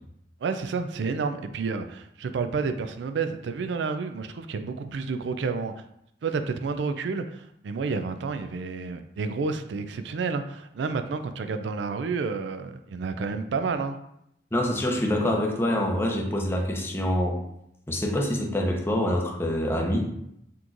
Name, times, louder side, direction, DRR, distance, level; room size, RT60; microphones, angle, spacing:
voice 1, 0.4-5.7 6.2-14.0, right 4 dB, 80° right, 8 dB, 0.3 m, -30 dB
voice 2, 14.5-17.4 17.9-20.1, left 1 dB, 15° left, 1 dB, 0.6 m, -25 dB
5.9 x 3.0 x 2.5 m, 0.77 s
head